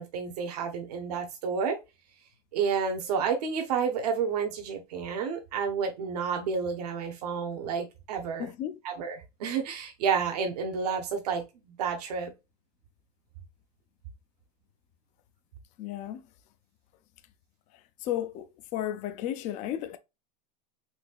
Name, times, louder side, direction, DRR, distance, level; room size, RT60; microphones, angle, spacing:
voice 1, 0.0-1.8 2.5-8.5 8.8-12.3, right 6 dB, 85° right, 1.0 m, -30 dB
voice 2, 8.4-8.8 15.8-16.2 17.7-20.0, left 11 dB, 40° left, 0.5 m, -34 dB
4.1 x 2.8 x 2.3 m
supercardioid pair, 140°, 20 cm